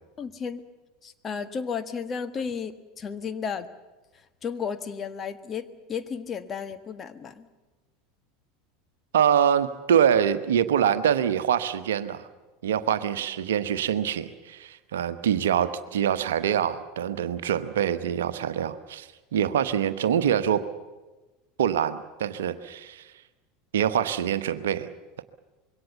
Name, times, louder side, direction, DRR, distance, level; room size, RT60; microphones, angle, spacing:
voice 1, 0.2-0.6 1.0-3.7 4.4-7.5, left 6 dB, 30° left, 9 dB, 1.5 m, -33 dB
voice 2, 9.1-12.3 12.6-20.6 21.6-23.1 23.7-24.9 25.2-25.3, right 9 dB, 65° right, 11 dB, 1.1 m, -25 dB
25.5 x 22.5 x 7.1 m, 1.2 s
figure-of-eight pair, 75°, 0 cm